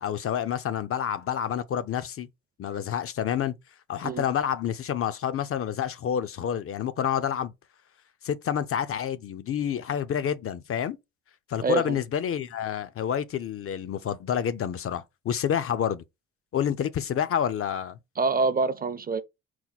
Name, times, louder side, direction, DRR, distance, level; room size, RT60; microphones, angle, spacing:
voice 1, 0.0-2.3 2.6-3.5 3.9-7.5 8.2-11.0 11.5-16.0 16.5-18.0, left 9 dB, 50° left, 0.5 m, -28 dB
voice 2, 11.6-12.0 18.2-19.2, right 3 dB, 30° right, 0.5 m, -26 dB
4.4 x 2.2 x 4.0 m
cardioid pair, 90°, 30 cm